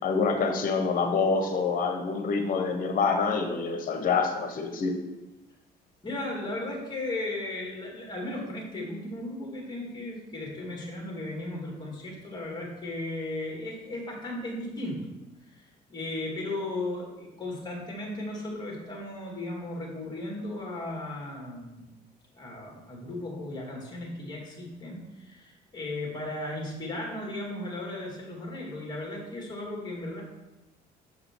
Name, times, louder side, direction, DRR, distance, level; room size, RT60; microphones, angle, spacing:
voice 1, 0.0-4.9, left 4 dB, 55° left, 5 dB, 1.2 m, -26 dB
voice 2, 6.0-15.1 15.5-21.9 22.3-30.2, left 2 dB, 25° left, -1 dB, 2.4 m, -36 dB
7.2 x 4.9 x 4.7 m, 1.0 s
cardioid pair, 110°, 17 cm